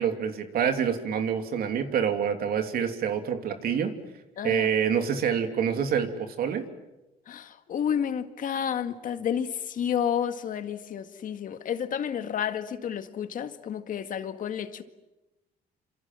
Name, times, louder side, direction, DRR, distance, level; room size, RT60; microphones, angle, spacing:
voice 1, 0.0-3.9 4.4-6.6, right 7 dB, 60° right, 6 dB, 3.1 m, -27 dB
voice 2, 4.4-4.7 7.3-14.8, left 8 dB, 55° left, 9 dB, 1.9 m, -30 dB
28.0 x 27.0 x 7.6 m, 1.0 s
cardioid pair, 110°, 17 cm